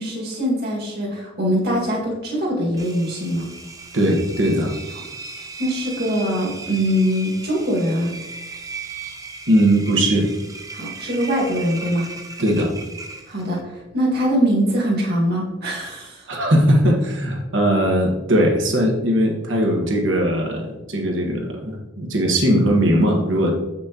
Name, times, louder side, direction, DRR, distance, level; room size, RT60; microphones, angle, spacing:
voice 1, 0.0-3.5 5.6-8.1 10.7-12.1 13.3-16.3, equal, 55° right, -3 dB, 2.0 m, -22 dB
Engine, 2.8-13.6, right 4 dB, 20° right, 0.6 m, -37 dB
voice 2, 3.9-4.7 9.5-10.3 12.4-12.7 16.3-23.5, equal, 80° right, 0 dB, 1.4 m, -19 dB
7.3 x 6.0 x 2.9 m, 1.1 s
head